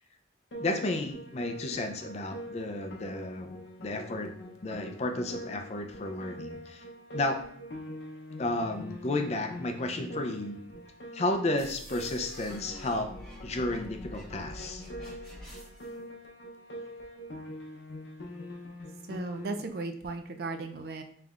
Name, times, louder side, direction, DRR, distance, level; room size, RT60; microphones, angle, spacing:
Piano, 0.5-19.7, equal, 65° left, 0.7 m, -44 dB
voice 1, 0.6-4.3 4.6-6.8 7.1-7.4 8.4-10.6 11.1-13.1 13.4-14.8, left 2 dB, 35° left, 5 dB, 0.4 m, -32 dB
sound 1, 11.6-16.0, equal, 5° left, 1.5 m, -47 dB
voice 2, 19.1-21.0, right 3 dB, 55° right, 6 dB, 0.4 m, -36 dB
5.3 x 3.3 x 2.4 m, 0.62 s
head